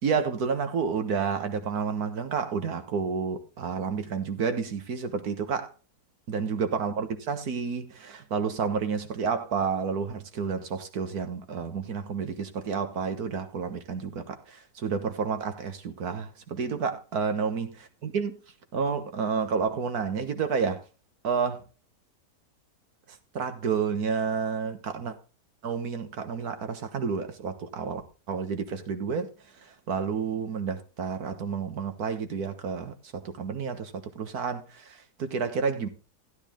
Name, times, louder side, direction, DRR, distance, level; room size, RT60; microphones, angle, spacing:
voice 1, 0.0-5.7 6.3-17.7 18.0-18.3 18.7-20.8 21.2-21.6 23.3-25.2 25.6-28.0 28.3-29.3 29.6-35.9, right 5 dB, 65° right, 1.8 m, -30 dB
12.5 x 10.5 x 3.7 m
omnidirectional pair, 1.8 m